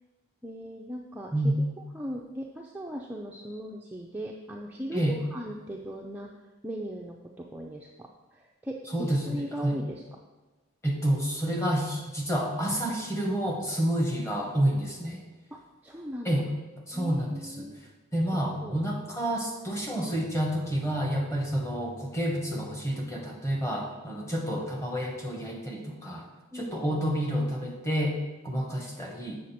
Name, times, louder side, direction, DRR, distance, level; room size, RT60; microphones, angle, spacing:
voice 1, 0.4-1.7 1.9-6.3 6.6-10.0 15.5-16.3 16.9-17.8 18.3-18.8 26.5-27.0, equal, 5° right, -1 dB, 0.4 m, -39 dB
voice 2, 8.9-9.7 10.8-15.2 16.2-16.4 16.9-17.7 18.1-26.2 26.5-29.4, right 1 dB, 15° left, 0 dB, 1.2 m, -29 dB
7.5 x 6.5 x 4.2 m, 1.2 s
head